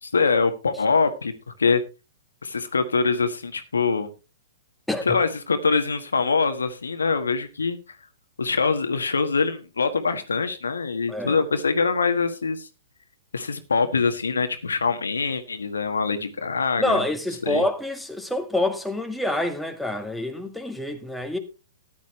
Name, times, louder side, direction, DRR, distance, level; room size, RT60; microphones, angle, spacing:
voice 1, 0.0-1.3 1.6-1.8 2.4-4.1 5.0-7.8 8.4-12.7 13.3-17.0 17.4-17.6, left 4 dB, 80° left, 1.4 m, -24 dB
voice 2, 16.8-21.4, left 1 dB, ahead, 1.7 m, -27 dB
14.0 x 10.5 x 3.1 m
figure-of-eight pair, 110°, 0 cm